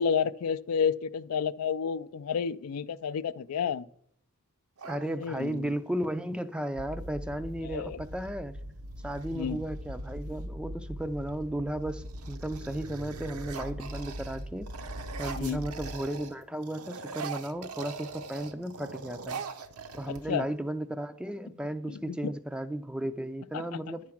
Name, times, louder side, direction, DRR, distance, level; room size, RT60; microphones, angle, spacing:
voice 1, 0.0-3.8 5.0-5.7 7.6-8.0 9.3-9.6 15.4-15.7 20.1-20.5 21.9-22.3 23.5-23.9, left 7 dB, 80° left, 0.4 m, -31 dB
voice 2, 4.8-8.6 9.0-14.9 15.2-19.4 19.9-24.1, right 1 dB, 5° right, 0.3 m, -35 dB
sound 1, 4.8-5.7 7.4-7.5 7.9-8.4 8.9-10.4 11.1-11.5 11.8-16.4 16.6-20.6, right 5 dB, 80° right, 0.7 m, -42 dB
sound 2, 6.7-16.0, equal, 45° right, 0.6 m, -41 dB
10.5 x 4.8 x 5.8 m
head